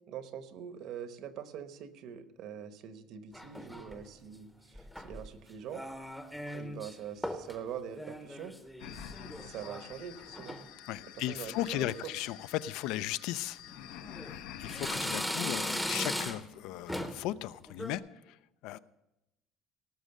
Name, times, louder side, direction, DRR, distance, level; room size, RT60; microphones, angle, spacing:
voice 1, 0.0-4.5 5.0-5.8 6.5-8.5 9.4-10.6 11.2-12.1, right 8 dB, 50° right, 11 dB, 0.9 m, -43 dB
sound 1, 3.3-4.1 4.8-5.3 5.7-7.0 7.2-7.6 7.9-9.9 10.2-10.7 11.2-11.5 11.9-12.0 12.9-13.1 13.7-14.3 14.7-16.6 16.9-17.3 17.7-18.0, equal, ahead, 0.7 m, -38 dB
sound 2, 8.8-14.9, left 10 dB, 80° left, 0.9 m, -48 dB
voice 2, 10.9-13.6 14.6-18.0 18.3-18.4 18.6-18.8, left 14 dB, 60° left, 16 dB, 0.4 m, -36 dB
18.0 x 6.4 x 6.5 m, 0.93 s
cardioid pair, 170°, 0 cm